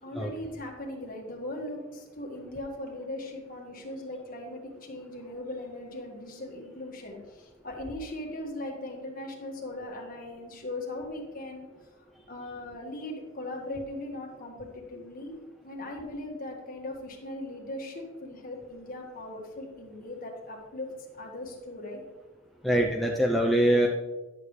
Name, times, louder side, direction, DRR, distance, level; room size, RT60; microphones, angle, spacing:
voice 1, 0.0-11.7 12.3-15.3 15.6-20.9 21.2-22.0, left 1 dB, 40° left, 0 dB, 1.7 m, -39 dB
voice 2, 22.6-23.9, right 1 dB, ahead, -1 dB, 0.5 m, -23 dB
10.5 x 6.9 x 3.2 m, 1.2 s
head